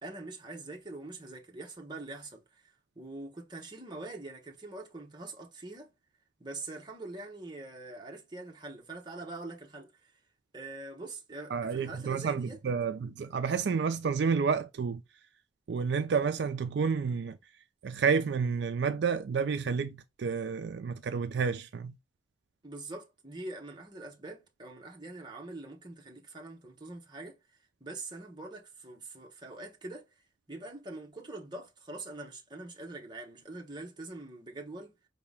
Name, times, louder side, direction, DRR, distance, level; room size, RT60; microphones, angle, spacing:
voice 1, 0.0-2.6 3.0-5.9 6.4-10.1 10.5-12.6 22.6-30.2 30.5-34.9, right 2 dB, 25° right, 1.0 m, -44 dB
voice 2, 11.5-15.0 15.7-17.4 17.8-21.9, right 5 dB, 65° right, 0.4 m, -30 dB
5.0 x 2.8 x 3.4 m
head